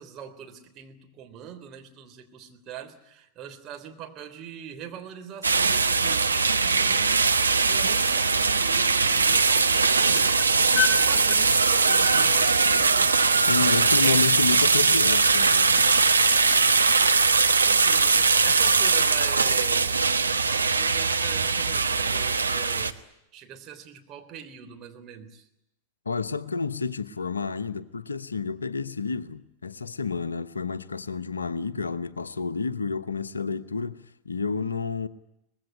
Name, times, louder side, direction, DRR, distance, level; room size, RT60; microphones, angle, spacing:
voice 1, 0.0-13.6 14.0-14.2 17.5-20.1 20.5-23.0 23.3-25.5, right 9 dB, 35° right, 3.5 m, -42 dB
sound 1, 5.4-22.9, right 4 dB, 80° right, 1.2 m, -21 dB
sound 2, 6.3-16.7, left 9 dB, 20° left, 5.0 m, -38 dB
voice 2, 13.3-15.9 26.0-35.1, left 4 dB, 75° left, 1.0 m, -30 dB
24.5 x 20.0 x 9.5 m
figure-of-eight pair, 90°, 0 cm